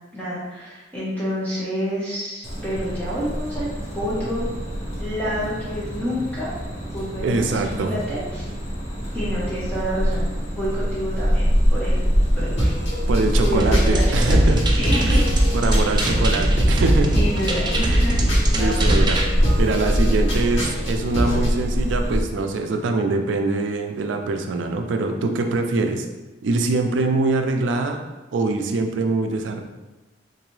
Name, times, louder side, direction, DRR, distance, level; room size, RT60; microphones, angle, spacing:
voice 1, 0.1-3.7 3.9-4.5 5.0-6.5 6.9-8.5 9.1-10.3 10.5-12.0 12.4-12.7 13.4-15.2 15.6-15.9 17.1-18.2 18.6-18.9, equal, 10° left, -9 dB, 0.8 m, -28 dB
sound 1, 2.4-22.2, equal, 40° left, 1.4 m, -24 dB
voice 2, 7.2-7.9 13.1-14.6 15.1-15.3 15.5-17.2 17.8-17.9 18.5-19.2 19.6-26.1 26.4-28.0 28.3-29.6, right 3 dB, 90° right, 5 dB, 0.4 m, -23 dB
sound 2, 12.6-21.5, equal, 85° left, 1.2 m, -27 dB
sound 3, 13.6-19.2, right 1 dB, 25° right, 0.4 m, -21 dB
3.8 x 2.6 x 3.1 m, 1.1 s
head